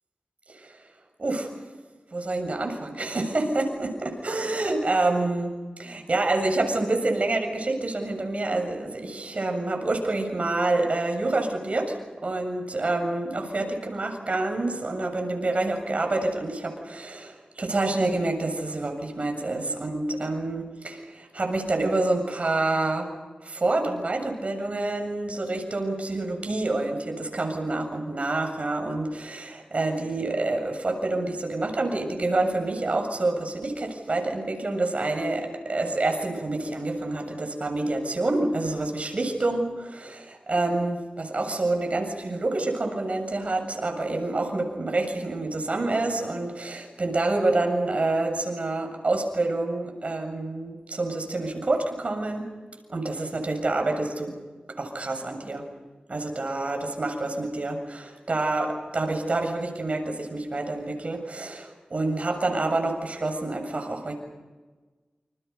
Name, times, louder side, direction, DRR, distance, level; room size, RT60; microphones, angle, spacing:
voice 1, 1.2-1.5 2.1-5.5 5.8-12.0 12.2-23.1 23.4-52.5 52.9-54.3 54.8-55.6 56.1-64.1, right 2 dB, 50° right, 4 dB, 7.2 m, -27 dB
29.5 x 28.0 x 5.5 m, 1.3 s
wide cardioid pair, 70°, 3 cm